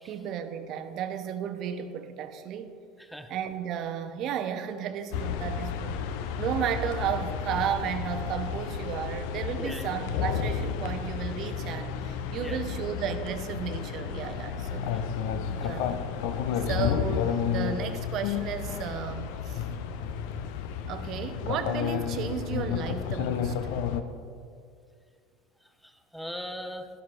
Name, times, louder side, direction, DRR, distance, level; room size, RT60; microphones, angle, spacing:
voice 1, 0.0-2.7 3.3-15.0 15.6-15.9 16.6-19.7 20.9-23.6, right 8 dB, 50° right, 9 dB, 0.8 m, -33 dB
sound 1, 5.1-24.0, left 8 dB, 65° left, 0.6 m, -31 dB
voice 2, 9.6-9.9 12.4-12.7 15.5-15.8 16.5-16.6 25.8-26.9, equal, ahead, 7 dB, 0.9 m, -39 dB
12.5 x 12.5 x 2.6 m, 2.2 s
figure-of-eight pair, 70°, 0 cm